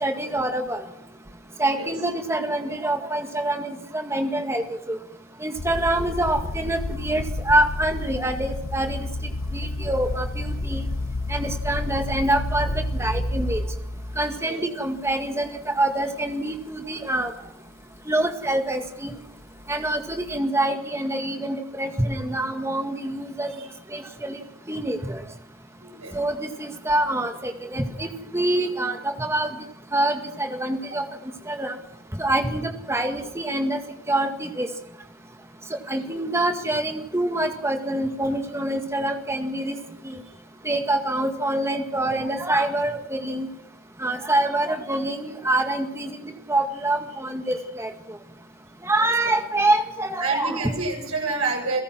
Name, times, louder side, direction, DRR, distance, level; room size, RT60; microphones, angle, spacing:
voice 1, 0.0-0.8 1.6-5.0 5.4-9.1 9.5-10.9 11.3-13.6 14.2-17.3 18.1-19.1 19.7-23.5 23.9-24.4 24.7-25.2 26.1-29.5 29.9-31.0 31.5-31.7 32.1-33.8 34.1-34.7 35.9-39.8 40.0-40.2 40.6-43.5 44.0-47.9 48.8-50.7, right 1 dB, 10° right, 5 dB, 1.9 m, -25 dB
sound 1, 5.6-14.4 15.1-15.5 16.0-16.1 19.7-20.4, left 1 dB, 70° left, 1.0 m, -30 dB
voice 2, 25.8-26.2 40.2-40.3 47.4-47.6 49.0-49.1 50.2-51.8, right 3 dB, 85° right, 2 dB, 7.2 m, -28 dB
29.5 x 17.5 x 6.1 m, 0.79 s
head